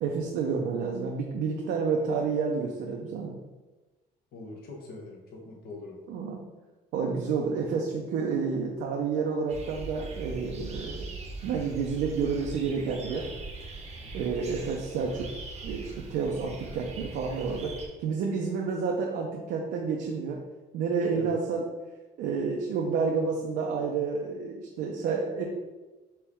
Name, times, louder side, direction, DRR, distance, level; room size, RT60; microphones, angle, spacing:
voice 1, 0.0-3.4 6.1-6.4 6.9-11.1 11.4-13.3 14.1-15.3 15.6-20.4 20.7-21.6 22.2-25.4, right 5 dB, 75° right, -1 dB, 0.6 m, -30 dB
voice 2, 4.3-6.0 14.0-14.3 21.1-21.4, left 2 dB, 65° left, 1 dB, 1.0 m, -43 dB
sound 1, 9.5-17.9, right 3 dB, 40° right, 0.8 m, -41 dB
4.5 x 3.1 x 3.5 m, 1.2 s
cardioid pair, 110°, 17 cm